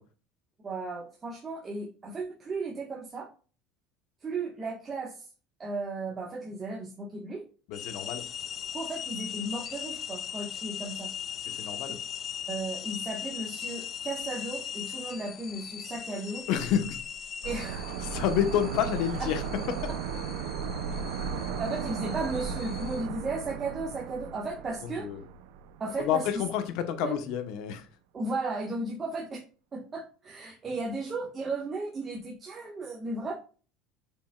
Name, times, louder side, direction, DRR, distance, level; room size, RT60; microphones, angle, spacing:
voice 1, 0.6-3.3 4.2-5.3 5.6-7.4 8.7-11.1 12.5-16.5 17.4-17.9 19.2-19.4 21.3-25.1 25.8-26.4 27.0-27.1 28.1-29.4 29.7-33.3, right 3 dB, 25° right, -2 dB, 1.5 m, -35 dB
voice 2, 7.7-8.2 11.5-12.0 16.5-17.0 18.0-19.4 24.8-25.2 26.0-27.9, left 9 dB, 65° left, 8 dB, 1.2 m, -29 dB
sound 1, 7.7-23.1, left 9 dB, 40° left, 0.4 m, -39 dB
sound 2, 17.4-26.2 26.4-26.5, right 6 dB, 85° right, 0.6 m, -36 dB
7.5 x 5.3 x 2.4 m, 0.37 s
cardioid pair, 130°, 0 cm